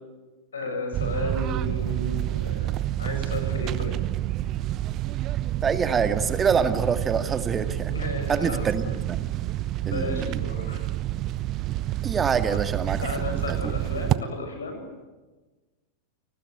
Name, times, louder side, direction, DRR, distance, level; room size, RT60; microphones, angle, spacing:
voice 1, 0.5-4.0 7.9-8.9 9.8-10.8 13.0-14.9, left 2 dB, 70° left, 6 dB, 7.7 m, -33 dB
sound 1, 0.9-14.2, right 14 dB, 35° right, 1.0 m, -28 dB
voice 2, 5.6-7.9 8.3-9.2 9.9-10.4 12.0-13.0 13.3-13.7, right 6 dB, 20° right, 9 dB, 2.0 m, -26 dB
29.5 x 20.0 x 10.0 m, 1.2 s
figure-of-eight pair, 90°, 0 cm